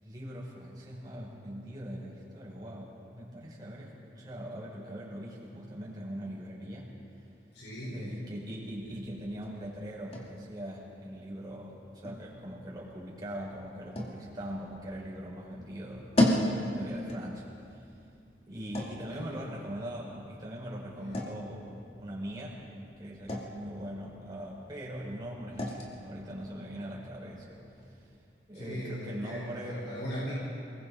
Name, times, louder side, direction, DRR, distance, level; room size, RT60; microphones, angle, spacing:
voice 1, 0.0-6.9 7.8-16.1 16.4-17.5 17.7-17.9 18.5-22.6 23.0-27.6 27.8-28.0 28.5-29.8, equal, 25° right, -6 dB, 5.5 m, -41 dB
voice 2, 7.5-8.2 19.1-19.7 21.0-21.4 28.5-30.3, equal, 80° left, -7 dB, 5.2 m, -40 dB
sound 1, 8.7-28.2, left 1 dB, 35° left, 2.4 m, -37 dB
29.5 x 21.0 x 4.2 m, 2.6 s
head